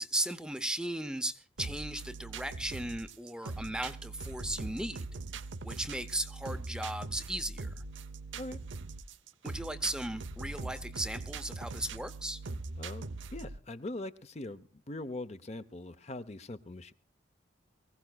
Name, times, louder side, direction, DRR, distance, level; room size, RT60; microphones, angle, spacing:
voice 1, 0.0-5.1 5.6-7.7 9.4-12.4, right 1 dB, 5° right, 10 dB, 0.7 m, -36 dB
sound 1, 1.6-13.6, right 3 dB, 80° right, 0.8 m, -41 dB
voice 2, 12.8-16.9, left 2 dB, 35° left, 11 dB, 0.8 m, -42 dB
24.0 x 16.0 x 2.3 m, 0.39 s
head